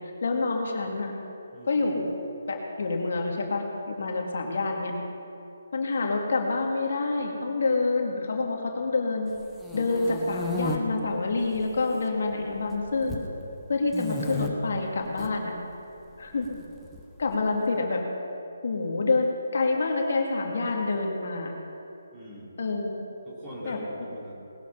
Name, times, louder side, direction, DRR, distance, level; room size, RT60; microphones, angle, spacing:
voice 1, 0.2-1.1 1.7-2.1 2.5-4.9 5.7-9.3 9.7-13.2 13.7-15.5 16.2-16.5 17.2-18.0 18.6-21.5 22.6-23.0 23.7-23.8, left 3 dB, 60° left, 1 dB, 2.1 m, -27 dB
voice 2, 1.5-2.0 16.3-16.7 22.1-22.6 23.2-24.4, equal, 15° right, -6 dB, 3.2 m, -42 dB
sound 1, 9.4-10.8 11.4-12.0 12.3-13.3 13.9-14.5 15.0-15.3 16.4-17.4, left 3 dB, ahead, 1.0 m, -34 dB
19.5 x 7.7 x 5.5 m, 2.8 s
hypercardioid pair, 160°, 0 cm